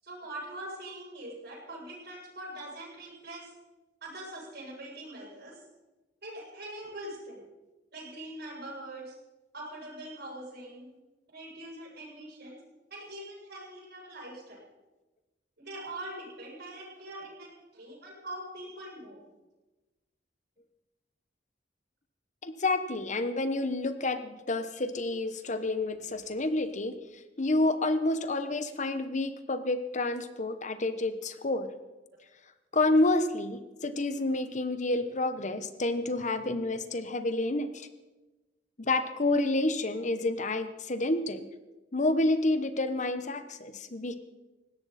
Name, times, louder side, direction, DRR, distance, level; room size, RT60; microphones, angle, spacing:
voice 1, 0.0-3.5 4.0-5.6 6.2-7.5 7.9-9.1 9.5-11.0 11.3-12.6 12.9-14.6 15.6-19.2, right 1 dB, 60° right, -4 dB, 7.8 m, -43 dB
voice 2, 22.4-27.0 27.4-31.7 32.7-37.9 38.8-41.5 41.9-44.2, left 2 dB, 45° left, 10 dB, 1.1 m, -29 dB
19.5 x 16.5 x 4.3 m, 1.1 s
head